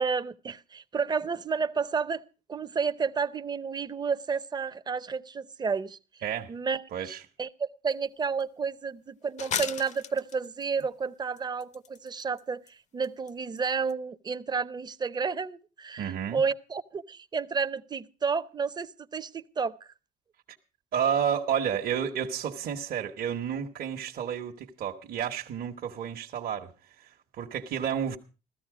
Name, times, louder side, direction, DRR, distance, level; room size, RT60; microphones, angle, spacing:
voice 1, 0.0-2.2 2.5-6.0 6.5-19.8, right 5 dB, 25° right, 0.7 m, -31 dB
voice 2, 6.2-6.5 6.9-7.2 16.0-16.4 20.9-26.7 27.0-28.2, right 8 dB, 60° right, 1.2 m, -31 dB
sound 1, 7.9-8.0 8.4-8.5 9.4-10.8 11.4-12.4 12.7-12.8 13.0-13.3 13.6-13.7 13.9-14.0, left 8 dB, 45° left, 0.6 m, -35 dB
15.5 x 13.5 x 4.9 m
cardioid pair, 110°, 17 cm